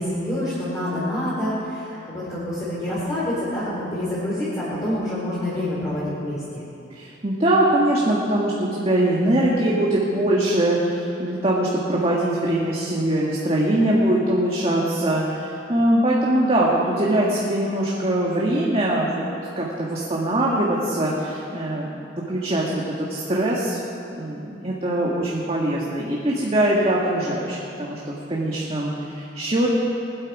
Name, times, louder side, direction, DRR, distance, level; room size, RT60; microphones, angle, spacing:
voice 1, 0.0-6.6, left 1 dB, 20° left, -10 dB, 4.0 m, -27 dB
voice 2, 6.9-19.2 19.5-23.8 24.1-29.7, right 1 dB, 35° right, -4 dB, 1.8 m, -22 dB
20.5 x 12.0 x 4.9 m, 2.7 s
head